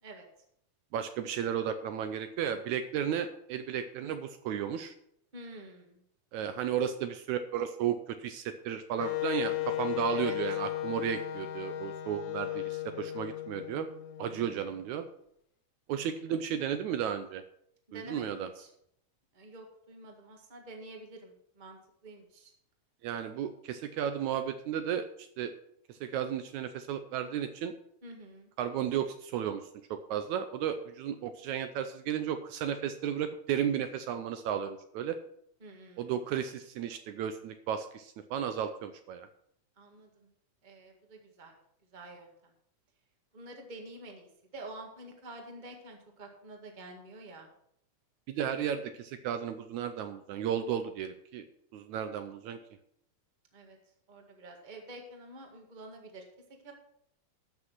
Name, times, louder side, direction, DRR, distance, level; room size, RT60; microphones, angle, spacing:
voice 1, 0.9-4.9 6.3-13.9 14.2-15.1 15.9-17.4 17.9-18.5 23.0-25.5 25.9-27.7 28.6-29.6 29.9-35.2 36.0-39.3 48.3-51.5 51.7-52.6, right 9 dB, 75° right, 9 dB, 1.9 m, -34 dB
voice 2, 5.3-6.0 10.1-10.4 14.3-14.7 17.9-18.7 19.3-22.5 28.0-28.5 35.6-36.1 39.8-40.3 40.6-41.5 41.9-42.3 43.3-47.5 53.5-53.8 54.1-56.2 56.6-56.7, right 2 dB, 20° right, 2 dB, 1.5 m, -48 dB
Wind instrument woodwind instrument, 9.0-14.8, left 14 dB, 85° left, 2.5 m, -35 dB
13.0 x 6.3 x 6.0 m, 0.72 s
omnidirectional pair, 3.6 m